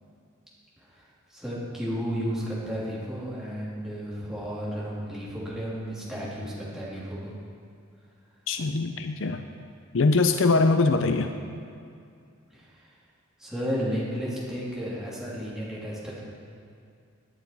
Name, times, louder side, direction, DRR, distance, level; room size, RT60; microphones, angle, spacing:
voice 1, 1.3-7.3 12.5-12.7 13.4-16.2, equal, ahead, -8 dB, 3.1 m, -33 dB
voice 2, 8.5-9.4 9.9-11.3, left 3 dB, 60° left, 7 dB, 0.6 m, -22 dB
18.5 x 9.4 x 4.7 m, 2.4 s
head